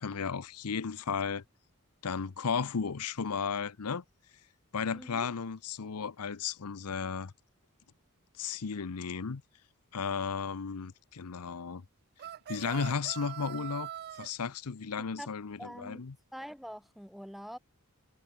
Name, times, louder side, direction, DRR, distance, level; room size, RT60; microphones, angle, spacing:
voice 1, 0.0-1.4 2.0-4.0 4.7-7.3 8.4-9.4 9.9-11.8 12.5-13.9 14.2-16.1, left 6 dB, 85° left, 0.7 m, -34 dB
voice 2, 4.9-5.3 15.0-16.0 16.3-17.6, equal, ahead, 0.9 m, -45 dB
sound 1, 12.2-14.3, right 10 dB, 45° right, 0.3 m, -42 dB
head